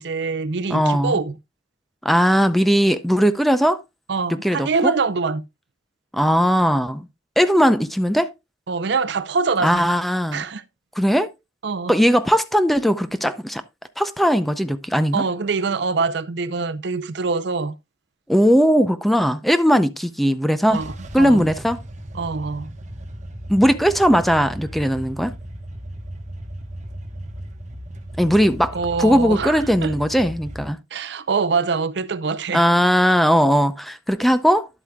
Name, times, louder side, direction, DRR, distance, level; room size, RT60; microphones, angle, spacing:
voice 1, 0.0-1.3 4.1-5.4 8.7-9.8 10.3-10.6 11.6-11.9 15.1-17.7 20.7-21.5 22.1-22.7 28.7-30.0 30.9-32.6, right 4 dB, 65° right, 0.6 m, -24 dB
voice 2, 0.7-1.1 2.0-3.8 4.4-4.9 6.1-7.0 7.4-8.3 9.6-10.5 11.0-11.3 11.9-13.6 14.0-15.2 18.3-20.8 21.1-21.8 23.5-25.3 28.2-30.8 32.5-34.7, equal, ahead, 0.5 m, -18 dB
sound 1, 20.7-30.7, equal, 40° right, 1.1 m, -36 dB
11.0 x 8.0 x 2.3 m
head